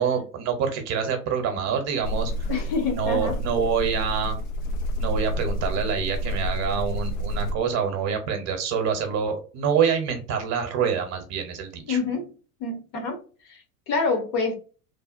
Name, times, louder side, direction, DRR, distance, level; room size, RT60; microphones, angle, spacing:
voice 1, 0.0-2.5 2.9-4.4 5.0-12.0, right 7 dB, 35° right, 0.9 m, -26 dB
sound 1, 2.0-7.5, equal, 60° left, 0.8 m, -29 dB
voice 2, 2.5-3.4 11.9-12.3 12.6-14.5, left 4 dB, 45° left, 1.3 m, -27 dB
3.3 x 2.4 x 2.5 m
figure-of-eight pair, 90°, 45 cm